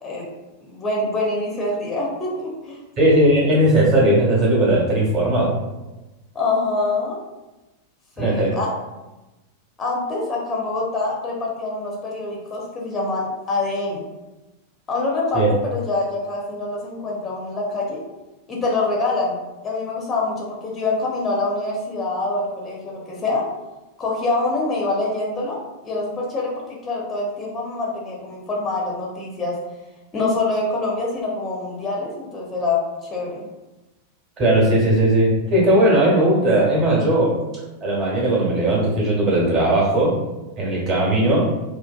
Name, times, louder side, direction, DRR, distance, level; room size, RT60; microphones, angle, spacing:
voice 1, 0.7-2.8 6.3-7.2 8.2-8.7 9.8-14.0 14.9-18.0 18.5-23.5 24.0-25.6 25.8-26.5 26.8-29.6 30.1-33.5, left 3 dB, 20° left, -2 dB, 0.5 m, -25 dB
voice 2, 3.0-5.5 8.2-8.6 15.3-15.5 34.4-37.4 37.8-40.1 40.6-41.5, right 1 dB, 35° right, -5 dB, 1.0 m, -18 dB
2.5 x 2.3 x 2.2 m, 1.1 s
figure-of-eight pair, 90°, 0 cm